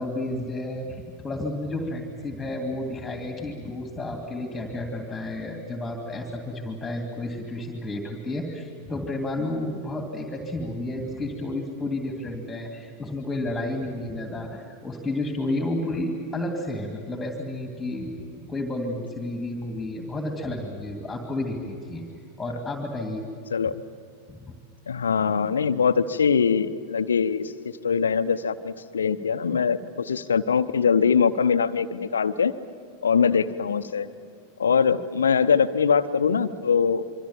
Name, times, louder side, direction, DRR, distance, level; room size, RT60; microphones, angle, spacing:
voice 1, 0.0-23.2 24.3-24.6, left 1 dB, 10° left, 3 dB, 2.7 m, -31 dB
voice 2, 23.5-23.8 24.9-32.5 33.0-34.1 34.6-37.1, left 6 dB, 70° left, 12 dB, 0.9 m, -22 dB
27.0 x 24.5 x 7.4 m, 2.3 s
figure-of-eight pair, 90°, 0 cm